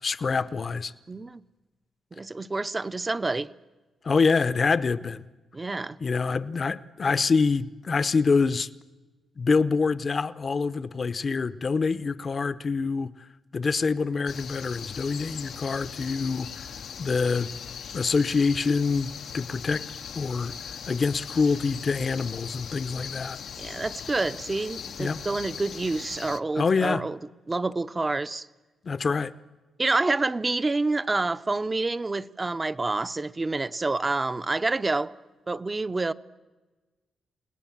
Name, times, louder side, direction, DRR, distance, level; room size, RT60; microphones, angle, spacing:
voice 1, 0.0-0.9 4.0-5.2 6.0-8.7 9.4-13.1 13.5-16.7 17.0-17.5 17.9-19.8 20.1-23.4 25.0-25.2 26.5-27.0 28.8-29.3, left 4 dB, 40° left, 0.8 m, -26 dB
voice 2, 1.1-1.4 2.1-3.5 5.5-6.0 23.6-27.2 27.5-28.5 29.8-35.1 35.5-36.1, right 3 dB, 25° right, 0.7 m, -28 dB
sound 1, 14.3-26.4, left 7 dB, 70° left, 0.8 m, -39 dB
29.5 x 18.5 x 7.3 m
cardioid pair, 105°, 0 cm